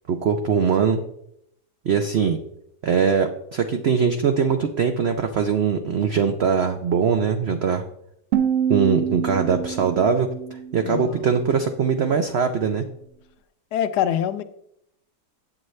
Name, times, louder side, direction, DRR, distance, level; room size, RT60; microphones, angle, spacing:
voice 1, 0.1-1.0 1.8-2.4 2.8-7.8 8.7-10.3 10.7-12.8, right 6 dB, 75° right, 0.6 m, -21 dB
sound 1, 8.3-11.3, right 8 dB, 55° right, 0.9 m, -26 dB
voice 2, 10.8-11.3 13.7-14.4, left 10 dB, 75° left, 1.1 m, -24 dB
8.7 x 7.6 x 3.2 m
omnidirectional pair, 1.8 m